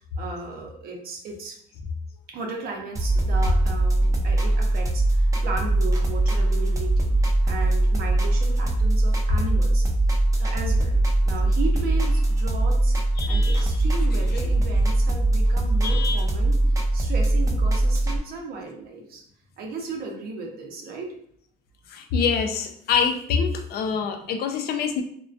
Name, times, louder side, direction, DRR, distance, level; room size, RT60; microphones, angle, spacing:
voice 1, 0.2-1.6 2.3-9.9 10.4-13.0 13.3-16.6 16.9-19.2 19.6-21.1 23.9-24.0, right 3 dB, 65° right, 1 dB, 0.6 m, -35 dB
sound 1, 3.0-18.2, right 1 dB, 20° right, 0.4 m, -21 dB
voice 2, 13.2-13.7 15.8-16.3 21.9-25.0, left 6 dB, 65° left, 6 dB, 0.4 m, -26 dB
2.3 x 2.2 x 2.5 m, 0.66 s
cardioid pair, 110°, 17 cm